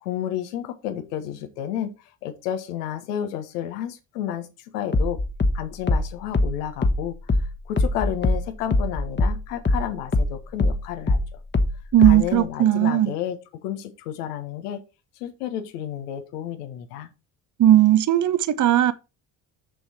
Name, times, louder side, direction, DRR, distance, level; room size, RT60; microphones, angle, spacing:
voice 1, 0.0-5.2 5.5-7.2 7.6-11.2 12.0-14.8 15.2-17.1, left 10 dB, 80° left, 1.4 m, -31 dB
sound 1, 4.9-9.9 10.1-12.4, left 2 dB, 25° left, 1.3 m, -22 dB
voice 2, 11.9-13.1 17.6-18.9, right 12 dB, 40° right, 0.9 m, -17 dB
7.0 x 6.4 x 4.3 m
hypercardioid pair, 55°, 46 cm